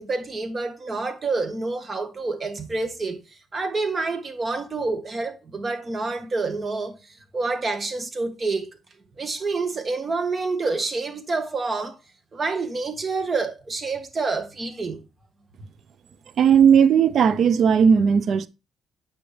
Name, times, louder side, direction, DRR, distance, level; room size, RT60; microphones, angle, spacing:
voice 1, 0.0-3.2 3.5-7.0 7.3-8.8 9.2-12.0 12.3-15.0, right 3 dB, 35° right, 1.6 m, -28 dB
voice 2, 16.4-18.5, right 7 dB, 60° right, 0.6 m, -16 dB
9.4 x 5.6 x 3.3 m
cardioid pair, 90°, 0 cm